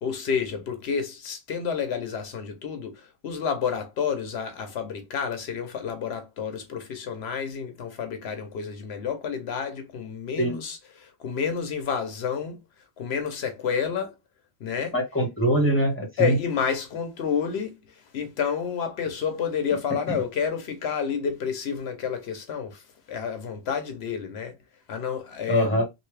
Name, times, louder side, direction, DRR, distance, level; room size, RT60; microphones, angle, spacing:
voice 1, 0.0-12.6 13.0-14.1 14.6-14.9 16.2-17.8 18.1-22.8 23.1-24.6 24.9-25.9, left 7 dB, 80° left, 0.9 m, -29 dB
voice 2, 14.9-16.3 20.1-20.2 25.5-25.9, equal, 10° left, 1.3 m, -23 dB
3.3 x 2.6 x 3.1 m
omnidirectional pair, 1.1 m